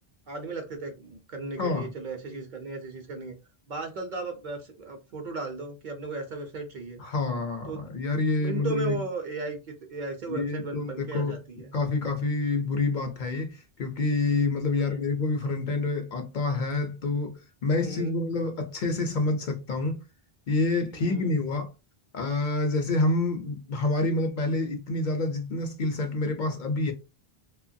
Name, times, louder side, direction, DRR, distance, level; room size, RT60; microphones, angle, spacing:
voice 1, 0.3-3.4 3.7-7.0 7.7-7.8 8.4-11.8 14.7-15.1 17.8-18.1 21.0-21.3, right 3 dB, 55° right, 0.6 m, -36 dB
voice 2, 1.6-1.9 7.0-9.0 10.3-11.4 11.7-13.5 13.8-20.0 20.5-21.7 22.1-26.9, left 3 dB, 55° left, 0.7 m, -27 dB
2.9 x 2.2 x 2.5 m
omnidirectional pair, 1.0 m